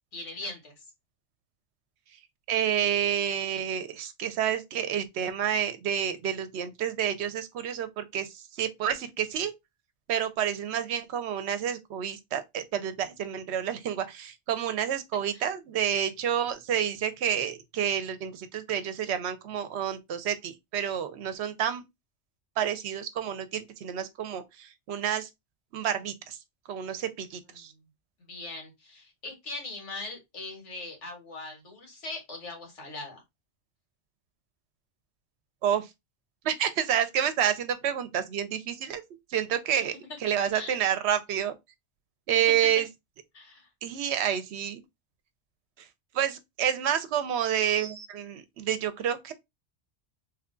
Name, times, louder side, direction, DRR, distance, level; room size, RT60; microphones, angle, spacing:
voice 1, 0.1-0.8 15.3-15.4 27.5-27.8 28.2-33.2 40.5-40.8 42.5-42.6 43.3-43.7, left 2 dB, 85° left, 1.6 m, -40 dB
voice 2, 2.5-9.5 10.1-21.8 22.6-25.3 25.7-26.4 26.7-27.7 35.6-35.9 36.4-39.0 39.3-39.9 40.2-41.5 42.3-42.9 43.8-44.8 46.1-49.3, right 9 dB, 75° right, 0.8 m, -29 dB
3.1 x 2.3 x 3.6 m
omnidirectional pair, 1.2 m